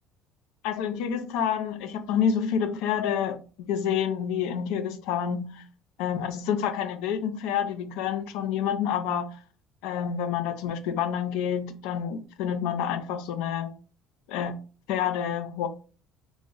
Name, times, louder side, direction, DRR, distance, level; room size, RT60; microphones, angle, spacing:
voice 1, 0.6-5.6 6.0-9.3 9.8-13.7 14.3-14.5 14.9-15.7, left 8 dB, 75° left, 0.4 m, -28 dB
2.5 x 2.0 x 3.7 m
supercardioid pair, 75°, 0 cm